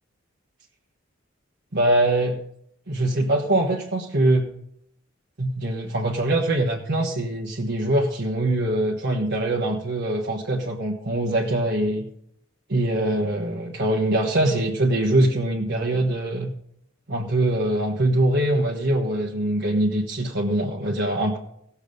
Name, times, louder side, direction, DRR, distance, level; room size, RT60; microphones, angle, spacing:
voice 1, 1.7-2.4 2.9-4.5 5.4-12.1 12.7-16.5 17.1-21.4, right 1 dB, 55° right, -1 dB, 1.3 m, -23 dB
17.0 x 7.1 x 5.3 m, 0.73 s
head